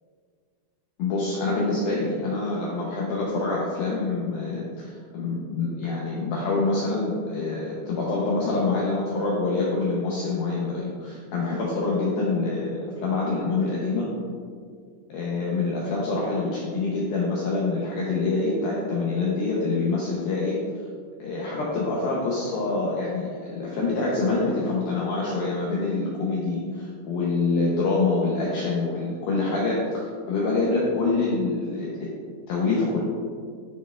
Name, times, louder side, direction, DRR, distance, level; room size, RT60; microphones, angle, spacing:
voice 1, 1.0-14.1 15.1-20.6 21.2-32.1 32.5-33.0, left 3 dB, 85° left, -5 dB, 2.1 m, -26 dB
11.0 x 4.2 x 2.3 m, 2.1 s
omnidirectional pair, 5.2 m